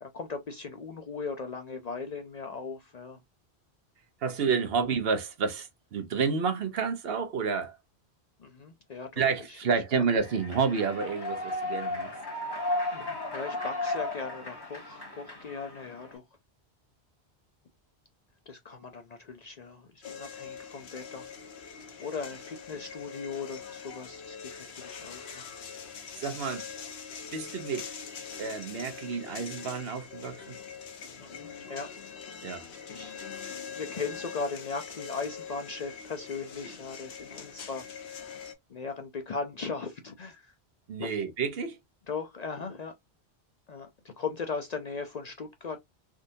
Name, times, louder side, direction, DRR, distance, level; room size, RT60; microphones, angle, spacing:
voice 1, 0.0-3.2 8.4-9.6 12.9-16.2 18.5-21.3 22.0-25.4 31.2-31.9 32.9-33.2 33.8-38.1 38.7-40.5 41.0-41.1 42.1-42.9 43.7-45.8, left 4 dB, 50° left, 0.5 m, -38 dB
voice 2, 4.2-7.8 9.2-12.1 26.2-26.7 27.3-27.9 28.4-30.6 32.4-32.7 40.9-41.8, right 5 dB, 65° right, 0.9 m, -30 dB
Human voice / Clapping / Cheering, 10.2-16.2, left 2 dB, 25° left, 1.2 m, -35 dB
sound 1, 20.0-38.5, left 6 dB, 75° left, 1.0 m, -43 dB
3.7 x 2.6 x 2.5 m
omnidirectional pair, 1.1 m